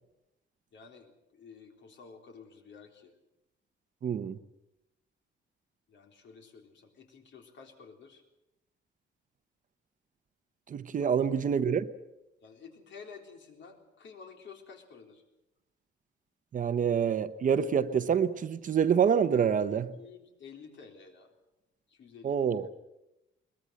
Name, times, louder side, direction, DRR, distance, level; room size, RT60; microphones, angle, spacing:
voice 1, 0.7-3.2 5.9-8.2 11.0-11.1 12.4-15.2 19.9-21.3 21.9-22.4, left 5 dB, 65° left, 3.8 m, -51 dB
voice 2, 4.0-4.4 10.7-11.9 16.5-19.9 22.2-22.7, right 7 dB, 40° right, 0.9 m, -27 dB
22.0 x 20.5 x 7.7 m
wide cardioid pair, 180°, 21 cm